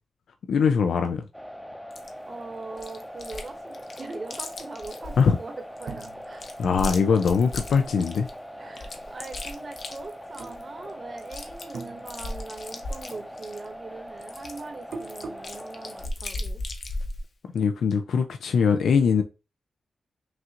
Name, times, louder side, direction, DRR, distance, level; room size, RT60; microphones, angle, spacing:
voice 1, 0.5-1.2 5.2-5.4 6.6-8.3 17.5-19.2, left 6 dB, 85° left, 0.4 m, -22 dB
sound 1, 1.3-16.1, equal, 5° left, 0.6 m, -42 dB
Chewing mastication, 1.9-2.1 2.8-3.5 3.7-5.2 5.8-8.3 8.8-10.6 10.9-11.0 11.2-13.7 14.2-17.2, left 2 dB, 55° left, 0.8 m, -36 dB
voice 2, 2.2-5.5 5.8-6.5 8.6-16.6, right 3 dB, 40° right, 1.0 m, -41 dB
sound 2, 5.9-8.7 9.1-9.9 10.3-11.2 11.5-12.8 13.1-15.6, right 4 dB, 75° right, 0.6 m, -43 dB
6.0 x 2.5 x 2.9 m
wide cardioid pair, 105°, 0 cm